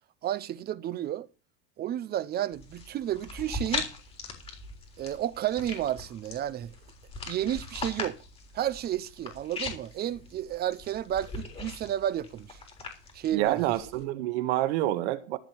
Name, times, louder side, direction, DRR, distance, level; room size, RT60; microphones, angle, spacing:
voice 1, 0.2-1.3 1.8-3.9 5.0-6.7 7.3-8.2 8.5-12.6 13.1-13.6, right 11 dB, 30° right, 0.8 m, -31 dB
sound 1, 2.5-14.0, left 3 dB, 15° left, 3.6 m, -40 dB
voice 2, 13.3-15.4, right 15 dB, 85° right, 1.7 m, -28 dB
14.5 x 5.0 x 8.9 m
cardioid pair, 160°, 32 cm